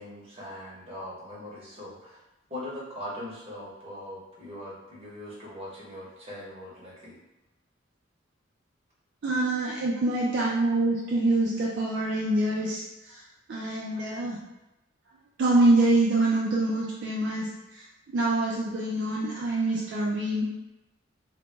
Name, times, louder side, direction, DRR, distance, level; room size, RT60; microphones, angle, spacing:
voice 1, 0.0-2.2 2.5-7.2, left 1 dB, 30° right, -6 dB, 0.7 m, -41 dB
voice 2, 9.2-13.2 13.5-14.4 15.4-17.5 17.7-20.4, right 2 dB, 60° right, -5 dB, 0.4 m, -25 dB
2.1 x 2.0 x 3.1 m, 0.97 s
head